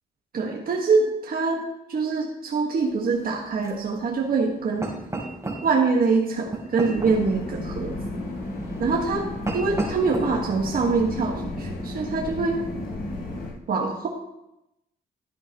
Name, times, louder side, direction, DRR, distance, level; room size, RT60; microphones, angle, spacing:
voice 1, 0.3-1.6 1.9-4.9 5.6-8.2 8.8-9.3 9.5-12.6 13.7-14.1, right 4 dB, 60° right, -1 dB, 1.7 m, -24 dB
sound 1, 2.8-11.4, right 2 dB, 20° right, 4.1 m, -36 dB
sound 2, 6.9-13.5, left 2 dB, 70° left, 4.0 m, -33 dB
13.5 x 9.9 x 3.1 m, 0.88 s
cardioid pair, 70°, 17 cm